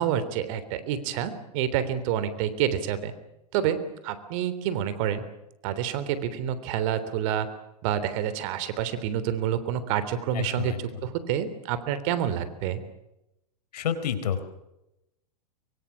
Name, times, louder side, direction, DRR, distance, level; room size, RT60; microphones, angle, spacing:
voice 1, 0.0-3.1 3.5-5.2 5.6-7.5 7.8-10.7 11.0-12.8, right 10 dB, 55° right, 13 dB, 3.5 m, -28 dB
voice 2, 10.3-11.0 13.7-14.4, left 8 dB, 75° left, 11 dB, 4.4 m, -30 dB
24.0 x 23.5 x 7.2 m, 0.89 s
hypercardioid pair, 120°, 21 cm